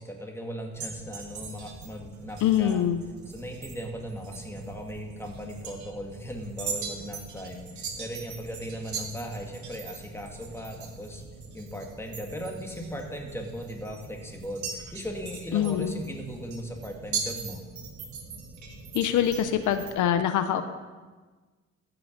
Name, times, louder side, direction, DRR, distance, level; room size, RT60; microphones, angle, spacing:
voice 1, 0.0-2.9 3.3-11.2 11.5-17.7, equal, 10° left, 2 dB, 1.9 m, -38 dB
sound 1, 0.7-19.9, right 5 dB, 70° right, 1.9 m, -40 dB
voice 2, 2.4-3.0 15.5-15.9 18.9-20.6, left 10 dB, 80° left, 9 dB, 0.8 m, -24 dB
15.0 x 6.0 x 5.2 m, 1.3 s
cardioid pair, 90°, 30 cm